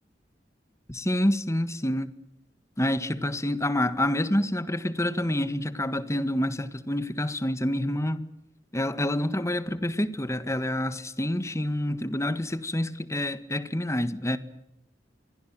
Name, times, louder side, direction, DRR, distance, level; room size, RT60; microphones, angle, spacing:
voice 1, 0.9-2.1 2.8-8.3 8.7-14.4, left 1 dB, 15° left, 1.7 m, -27 dB
27.5 x 23.5 x 7.6 m
head